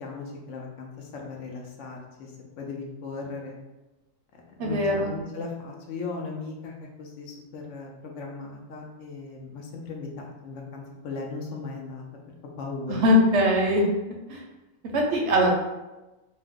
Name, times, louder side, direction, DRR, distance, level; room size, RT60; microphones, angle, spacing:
voice 1, 0.0-2.3 2.6-3.5 4.3-12.1 12.6-13.0, left 4 dB, 70° left, 0 dB, 0.9 m, -37 dB
voice 2, 4.6-5.1 12.9-13.8 14.3-14.4 14.9-15.5, left 1 dB, 65° right, 0 dB, 0.8 m, -21 dB
2.7 x 2.1 x 3.5 m, 1.1 s
omnidirectional pair, 1.4 m